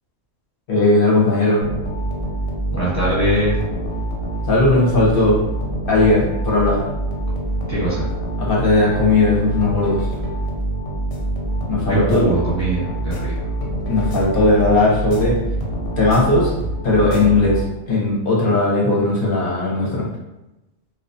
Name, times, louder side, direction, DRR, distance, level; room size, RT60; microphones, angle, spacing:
voice 1, 0.7-1.6 4.5-5.4 5.9-6.8 8.4-10.1 11.7-12.2 13.9-15.4 16.0-16.5 16.8-20.1, left 2 dB, 55° left, -4 dB, 0.7 m, -17 dB
sound 1, 1.6-18.0, right 1 dB, 90° left, 0.9 m, -26 dB
voice 2, 2.7-3.6 7.7-8.1 11.9-13.3, right 1 dB, 15° left, -9 dB, 0.9 m, -21 dB
2.3 x 2.1 x 2.5 m, 0.98 s
omnidirectional pair, 1.2 m